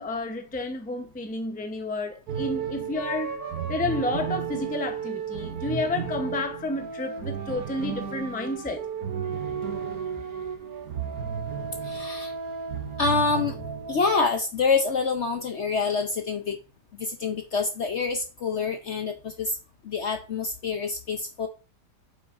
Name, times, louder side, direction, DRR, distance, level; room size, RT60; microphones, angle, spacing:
voice 1, 0.0-3.4 3.7-8.8, left 2 dB, 10° left, 0.6 m, -30 dB
sound 1, 2.3-14.2, right 7 dB, 65° right, 1.3 m, -33 dB
voice 2, 11.8-12.3 13.0-13.6 13.9-16.6 17.0-19.6 19.8-21.5, left 4 dB, 55° left, 0.8 m, -26 dB
8.0 x 6.1 x 2.6 m
omnidirectional pair, 1.8 m